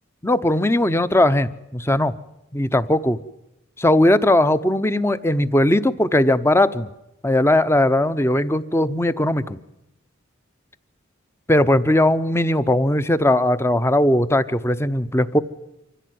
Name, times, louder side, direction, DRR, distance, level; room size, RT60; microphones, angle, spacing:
voice 1, 0.2-2.1 2.5-3.2 3.8-6.9 7.2-9.6 11.5-15.4, left 1 dB, 10° left, 14 dB, 0.8 m, -18 dB
25.5 x 15.5 x 9.4 m, 0.90 s
head